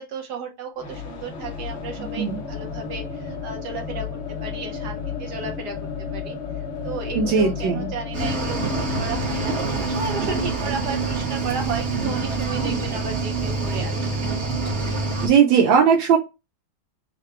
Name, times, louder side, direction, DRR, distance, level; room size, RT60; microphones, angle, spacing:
voice 1, 0.0-4.1 4.4-6.4 6.8-14.2 15.4-15.5, right 4 dB, 65° right, 3 dB, 1.2 m, -34 dB
sound 1, 0.8-12.6, left 6 dB, 55° left, 0.8 m, -34 dB
voice 2, 2.0-2.4 7.1-7.9 15.2-16.2, right 6 dB, 85° right, 0 dB, 1.5 m, -18 dB
Cricket / Waves surf, 8.1-15.3, right 3 dB, 45° right, 1.1 m, -26 dB
3.9 x 2.2 x 4.3 m, 0.26 s
omnidirectional pair, 2.1 m